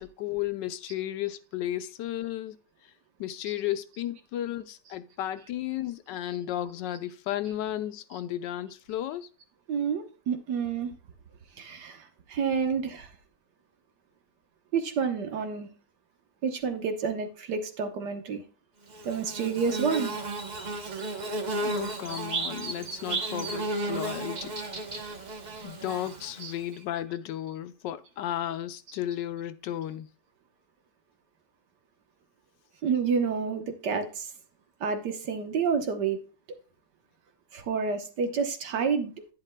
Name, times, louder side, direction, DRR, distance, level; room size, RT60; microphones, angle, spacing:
voice 1, 0.0-2.6 3.2-9.3 21.6-24.5 25.6-30.1, left 12 dB, 80° left, 1.3 m, -34 dB
voice 2, 9.7-10.9 11.6-13.1 14.7-15.7 16.4-18.4 19.0-20.1 26.4-26.5 32.8-34.3 34.8-36.2 37.5-39.1, right 6 dB, 70° right, 1.6 m, -29 dB
Bird / Buzz, 18.9-26.6, right 2 dB, 40° right, 0.7 m, -34 dB
10.5 x 9.8 x 2.2 m
omnidirectional pair, 1.9 m